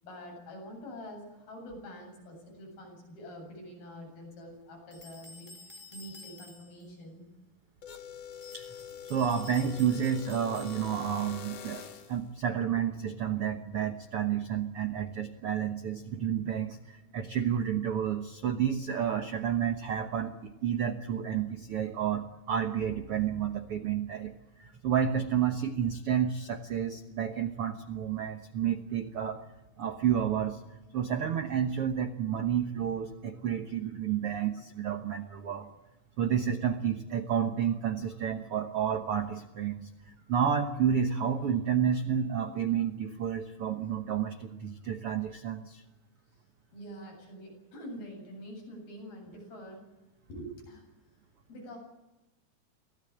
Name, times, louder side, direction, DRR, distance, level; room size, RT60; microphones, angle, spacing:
voice 1, 0.0-7.3 35.4-35.5 46.7-49.8 50.3-50.8 51.5-51.8, equal, 70° left, 1 dB, 9.7 m, -46 dB
sound 1, 4.9-6.9 8.3-11.2, left 2 dB, 5° left, 2.7 m, -51 dB
sound 2, 7.8-12.2, left 8 dB, 50° left, 2.5 m, -45 dB
voice 2, 9.1-11.8 12.1-24.3 24.6-29.4 29.8-30.6 30.9-35.7 36.2-39.9 40.3-45.8, right 8 dB, 80° right, 7 dB, 1.3 m, -30 dB
24.5 x 17.5 x 8.7 m, 1.0 s
omnidirectional pair, 4.5 m